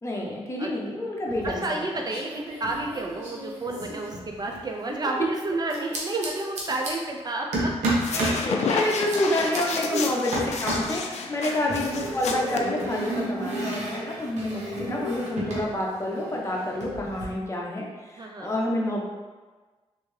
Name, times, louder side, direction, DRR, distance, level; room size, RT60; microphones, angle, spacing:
voice 1, 0.0-1.8 8.1-17.9 18.1-19.0, left 1 dB, 25° left, -2 dB, 0.8 m, -28 dB
sound 1, 1.3-1.8 2.1-4.7 5.7-6.9 7.5-8.4 8.8-9.6 10.3-11.0 11.7-15.7 16.0-17.2, right 1 dB, 85° right, 0.9 m, -32 dB
voice 2, 1.4-8.0 9.9-10.0 11.4-11.6 18.1-18.5, right 2 dB, 35° right, 1 dB, 0.4 m, -30 dB
sound 2, 7.9-13.2, left 4 dB, 75° left, 0.4 m, -31 dB
3.3 x 2.7 x 3.2 m, 1.3 s
cardioid pair, 70°, 11 cm